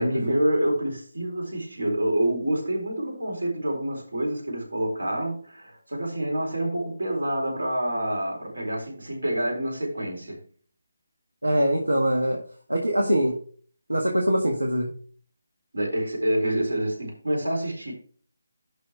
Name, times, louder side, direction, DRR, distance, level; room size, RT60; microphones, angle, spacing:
voice 1, 0.0-10.4 15.7-17.9, right 1 dB, 70° right, 4.2 m, -27 dB
voice 2, 11.4-12.4 12.7-13.4 13.9-14.9, equal, 85° right, 1.6 m, -23 dB
11.5 x 4.2 x 4.6 m
figure-of-eight pair, 150°, 0 cm